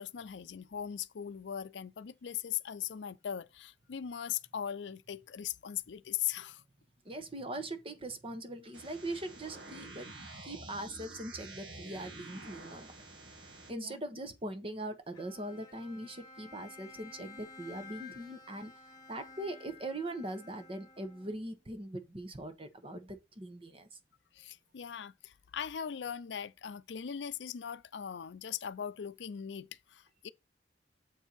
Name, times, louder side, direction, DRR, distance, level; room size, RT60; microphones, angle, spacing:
voice 1, 0.0-6.6 13.7-14.0 24.4-30.3, left 9 dB, 85° left, 0.5 m, -39 dB
voice 2, 7.0-10.1 10.4-12.9 13.7-18.7 19.1-23.9, right 1 dB, 30° right, 1.1 m, -41 dB
sound 1, 8.7-13.7, right 2 dB, 80° right, 2.0 m, -49 dB
Bowed string instrument, 15.1-21.6, left 4 dB, 25° left, 1.6 m, -53 dB
7.5 x 4.5 x 4.0 m
head